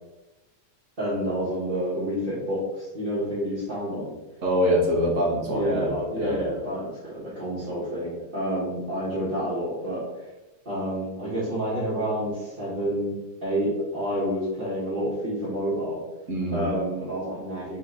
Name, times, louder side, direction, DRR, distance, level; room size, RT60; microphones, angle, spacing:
voice 1, 1.0-4.1 5.5-10.1 10.6-16.0 16.5-17.8, equal, 30° right, -11 dB, 1.2 m, -29 dB
voice 2, 4.4-5.9 6.2-6.4 16.3-16.7, equal, 50° right, -2 dB, 1.0 m, -24 dB
3.8 x 3.3 x 3.8 m, 1.1 s
omnidirectional pair, 2.3 m